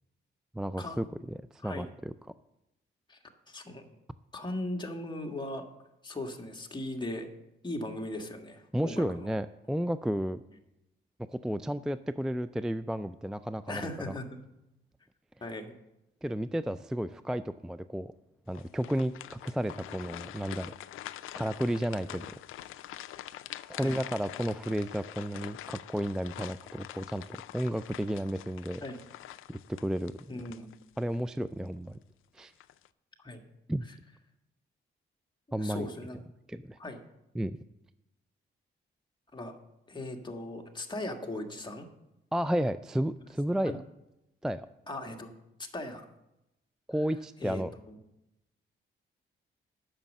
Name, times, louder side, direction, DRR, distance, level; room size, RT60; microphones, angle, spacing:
voice 1, 0.5-2.1 8.7-10.4 11.3-14.1 16.2-18.1 18.5-20.7 21.4-22.3 23.7-28.8 29.5-30.5 31.0-32.0 32.3-32.5 33.7-33.9 35.5-35.9 36.5-36.8 37.3-37.6 42.3-43.8 44.4-44.7 46.9-47.7, equal, 5° right, 13 dB, 0.3 m, -32 dB
voice 2, 3.5-3.8 4.3-5.7 6.0-7.3 7.6-9.3 13.7-14.4 15.4-15.7 23.8-24.0 28.8-29.0 30.3-30.7 33.2-33.4 35.6-36.2 36.8-37.0 39.3-39.5 39.9-41.9 43.7-43.8 44.9-45.3 45.7-46.0 47.4-48.0, left 1 dB, 20° left, 3 dB, 1.6 m, -38 dB
sound 1, 18.5-31.2 31.6-31.8 32.4-32.9, left 13 dB, 85° left, 0.4 m, -45 dB
8.9 x 6.4 x 7.2 m, 0.90 s
cardioid pair, 70°, 21 cm